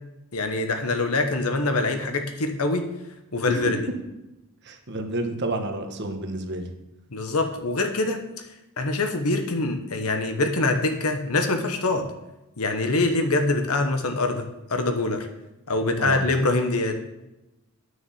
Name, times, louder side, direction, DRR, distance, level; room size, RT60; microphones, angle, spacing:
voice 1, 0.3-2.9 3.3-3.8 7.1-8.2 8.8-12.1 12.6-15.3 15.7-16.9, left 2 dB, 80° left, 6 dB, 1.1 m, -24 dB
voice 2, 4.7-6.6 16.0-16.2, right 2 dB, 50° right, 5 dB, 1.4 m, -30 dB
9.6 x 6.4 x 7.1 m, 0.97 s
head